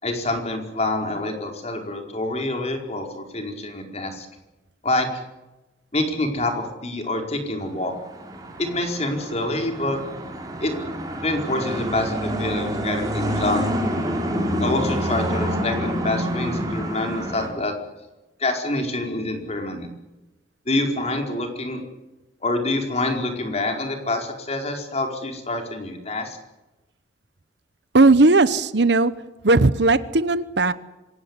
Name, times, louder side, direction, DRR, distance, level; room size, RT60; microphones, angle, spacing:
voice 1, 0.0-4.3 4.8-5.1 5.9-7.9 8.6-10.0 10.6-10.7 11.2-13.7 14.6-17.7 18.4-19.9 20.7-21.8 22.4-26.4, left 2 dB, 35° left, 4 dB, 4.7 m, -26 dB
sound 1, 7.8-17.5, equal, 20° right, 4.8 m, -27 dB
voice 2, 27.9-29.1 29.4-30.7, right 2 dB, 65° right, 15 dB, 1.1 m, -17 dB
26.0 x 18.0 x 9.8 m, 1.0 s
head